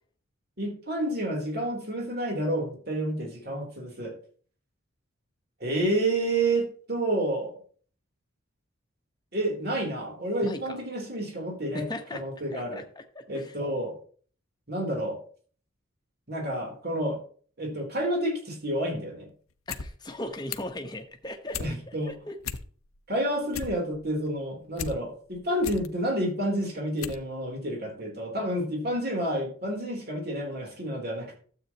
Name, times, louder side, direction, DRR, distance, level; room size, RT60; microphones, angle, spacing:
voice 1, 0.6-4.1 5.6-7.5 9.3-11.9 12.1-12.8 13.3-13.9 14.7-15.2 16.3-17.2 17.6-19.3 21.6-22.1 23.1-31.4, right 1 dB, 45° right, 1 dB, 3.5 m, -29 dB
voice 2, 10.4-10.8 11.7-12.2 12.5-13.6 19.7-21.6 21.9-22.4, left 1 dB, 20° left, 4 dB, 1.2 m, -38 dB
sound 1, 19.5-19.9 20.2-20.8 21.2-21.7 22.1-22.2 22.4-23.0 23.3-24.9 25.3-25.9 26.4-26.5 27.0-27.3 27.5-27.6, left 6 dB, 90° left, 0.8 m, -36 dB
12.5 x 8.1 x 3.0 m, 0.44 s
head